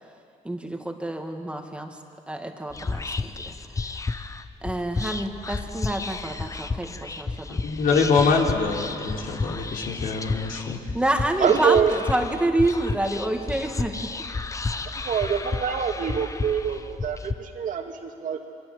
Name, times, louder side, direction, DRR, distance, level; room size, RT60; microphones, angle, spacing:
voice 1, 0.4-1.9 2.3-3.1 3.4-3.5 4.6-7.6 10.9-13.9, right 1 dB, 5° right, 3 dB, 2.1 m, -27 dB
Whispering, 2.7-17.3, left 3 dB, 20° left, 0.9 m, -32 dB
voice 2, 7.5-10.8, left 4 dB, 65° left, 0 dB, 3.9 m, -24 dB
voice 3, 11.4-11.9 15.0-18.5, right 7 dB, 55° right, 3 dB, 2.4 m, -25 dB
27.5 x 22.5 x 7.8 m, 2.5 s
cardioid pair, 125°, 16 cm